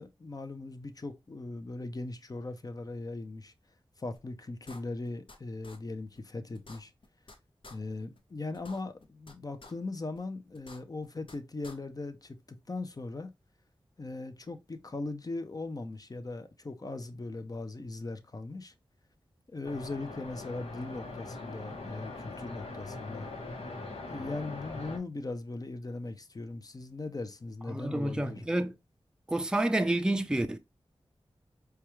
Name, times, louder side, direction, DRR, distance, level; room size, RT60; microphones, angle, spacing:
voice 1, 0.0-3.5 4.0-6.9 7.7-13.3 14.0-18.7 19.5-23.3 24.1-28.4, left 2 dB, 40° left, 0.6 m, -39 dB
sound 1, 4.2-4.3 4.7-5.4 5.6-5.8 6.2-6.3 6.5-7.4 7.6-7.8 8.2-8.3 8.5-9.3 9.6-9.7 10.2-10.3 10.5-11.4 11.6-11.8, left 2 dB, 60° left, 0.9 m, -50 dB
sound 2, 19.6-25.0, left 2 dB, 85° left, 0.9 m, -42 dB
voice 2, 27.7-28.7 29.3-30.6, right 1 dB, 10° right, 0.4 m, -29 dB
4.6 x 2.3 x 3.0 m
cardioid pair, 55°, 10 cm